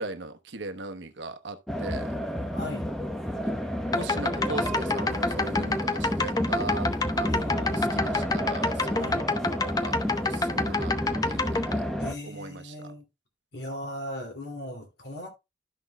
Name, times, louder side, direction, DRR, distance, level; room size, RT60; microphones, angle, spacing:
voice 1, 0.0-2.2 4.0-6.9 7.1-10.0 10.2-10.9 11.2-11.8 12.2-12.9, right 3 dB, 75° right, 1.0 m, -39 dB
sound 1, 1.7-12.2, equal, ahead, 0.9 m, -30 dB
voice 2, 2.5-2.9 7.3-7.9 8.9-9.3 12.0-13.0 13.5-15.3, left 1 dB, 60° left, 2.6 m, -38 dB
sound 2, 3.8-11.7, left 3 dB, 20° left, 0.5 m, -28 dB
13.0 x 6.2 x 2.3 m
head